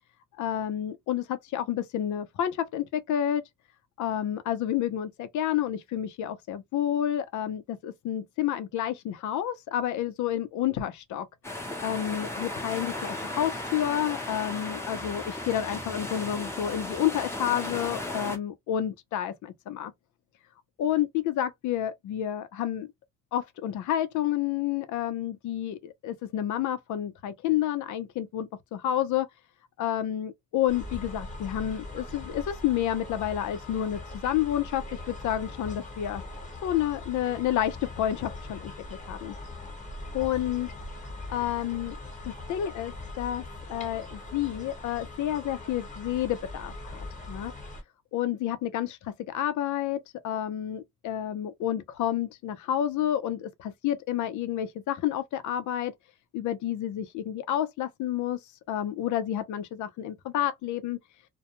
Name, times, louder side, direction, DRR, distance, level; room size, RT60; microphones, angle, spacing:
voice 1, 0.4-3.4 4.0-11.3 11.8-19.9 20.8-22.9 23.3-29.3 29.8-36.2 36.6-39.3 40.1-40.7 41.3-42.0 42.3-43.4 43.7-47.5 48.1-55.9 56.3-58.4 58.7-61.0, left 11 dB, 75° left, 0.6 m, -30 dB
sound 1, 11.4-18.4, left 1 dB, 10° left, 0.7 m, -35 dB
sound 2, 30.7-47.8, left 2 dB, 25° left, 1.1 m, -41 dB
2.2 x 2.1 x 2.9 m
cardioid pair, 90°, 30 cm